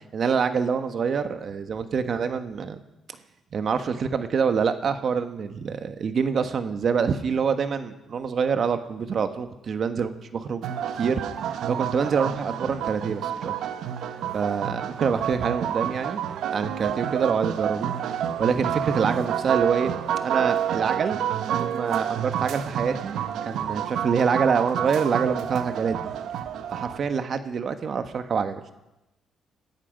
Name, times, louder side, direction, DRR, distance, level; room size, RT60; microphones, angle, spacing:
voice 1, 0.1-2.8 3.5-10.1 10.5-10.6 11.0-11.1 11.5-13.5 14.0-16.2 16.5-19.9 20.2-21.2 21.5-26.0 26.7-28.6, right 6 dB, 55° right, 9 dB, 1.4 m, -26 dB
sound 1, 10.6-27.0, right 9 dB, 80° right, 0.9 m, -29 dB
19.0 x 13.5 x 5.2 m, 0.95 s
cardioid pair, 90°, 0 cm